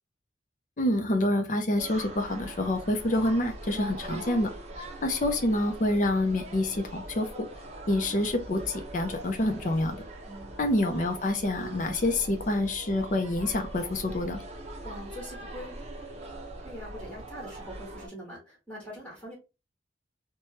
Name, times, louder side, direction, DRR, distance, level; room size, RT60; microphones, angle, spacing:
voice 1, 0.8-4.5 5.0-7.5 7.9-10.0 10.6-14.4, left 1 dB, 45° left, 5 dB, 0.5 m, -27 dB
sound 1, 1.8-18.1, right 1 dB, 35° right, 0.7 m, -42 dB
voice 2, 3.7-4.0 10.2-10.6 14.8-15.8 16.6-19.3, equal, 10° left, -5 dB, 1.6 m, -43 dB
3.1 x 2.2 x 2.8 m, 0.28 s
head